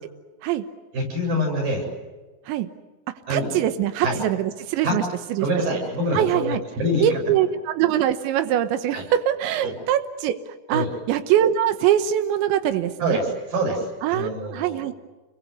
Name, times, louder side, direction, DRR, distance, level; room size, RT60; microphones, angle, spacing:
voice 1, 0.9-1.8 3.3-3.5 4.0-4.2 4.8-5.0 5.4-7.0 8.9-9.0 9.6-9.7 10.7-10.9 13.0-13.9 14.1-14.7, equal, 50° right, 1 dB, 9.4 m, -25 dB
voice 2, 3.3-5.6 6.1-6.6 7.0-13.2 14.0-14.9, right 11 dB, 90° right, 9 dB, 3.4 m, -23 dB
29.5 x 23.0 x 8.2 m, 1.2 s
omnidirectional pair, 5.1 m